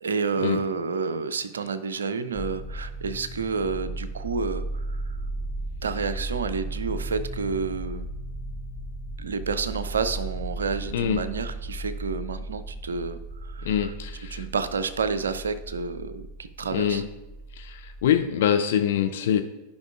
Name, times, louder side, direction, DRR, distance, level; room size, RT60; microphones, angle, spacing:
voice 1, 0.0-5.2 5.8-8.1 9.2-13.9 14.3-17.0, right 5 dB, 70° right, 12 dB, 0.4 m, -30 dB
sound 1, 2.3-18.2, right 1 dB, ahead, 0.8 m, -36 dB
voice 2, 13.6-14.4 16.7-17.0 17.6-19.4, left 9 dB, 55° left, 8 dB, 0.4 m, -24 dB
11.5 x 5.3 x 2.4 m, 1.0 s
figure-of-eight pair, 90°, 0 cm